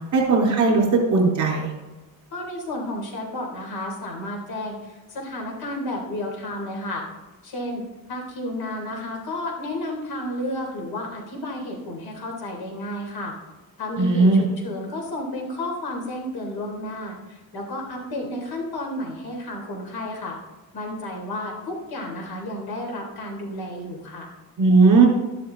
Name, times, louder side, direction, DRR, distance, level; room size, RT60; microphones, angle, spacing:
voice 1, 0.1-1.7 14.0-14.4 24.6-25.1, right 3 dB, 55° right, -1 dB, 4.0 m, -17 dB
voice 2, 2.3-7.0 7.4-13.3 13.8-20.4 20.7-24.3, left 1 dB, 80° left, 0 dB, 3.6 m, -32 dB
12.5 x 11.5 x 3.9 m, 1.2 s
cardioid pair, 175°, 37 cm